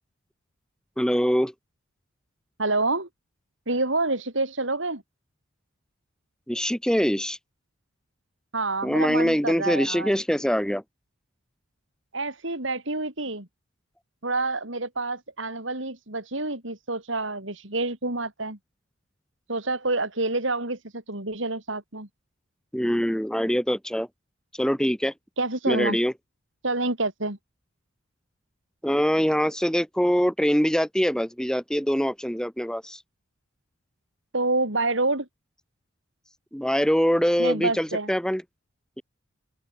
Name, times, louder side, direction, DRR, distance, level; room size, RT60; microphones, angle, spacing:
voice 1, 1.0-1.5 6.5-7.4 8.8-10.8 22.7-24.1 24.6-25.1 25.7-26.1 28.8-33.0 36.5-38.4, equal, 5° left, 4.0 m, -23 dB
voice 2, 2.6-3.1 3.7-5.0 8.5-10.1 12.1-13.5 14.2-18.6 19.5-22.1 25.4-26.0 26.6-27.4 34.3-35.3 37.4-38.1, right 2 dB, 70° right, 5.0 m, -27 dB
open air
head